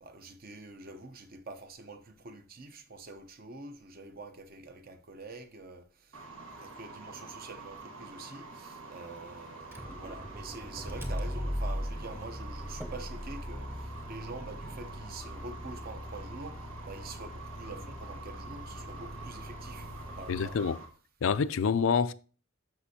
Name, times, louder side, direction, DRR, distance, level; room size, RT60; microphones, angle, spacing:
voice 1, 0.0-20.6, right 3 dB, 45° right, 0.7 m, -46 dB
sound 1, 6.1-20.9, right 3 dB, 80° right, 1.6 m, -47 dB
Motor vehicle (road), 9.6-20.8, equal, 10° right, 0.8 m, -40 dB
voice 2, 20.3-20.8 21.2-22.1, left 6 dB, 65° left, 0.4 m, -27 dB
12.5 x 5.3 x 2.8 m
head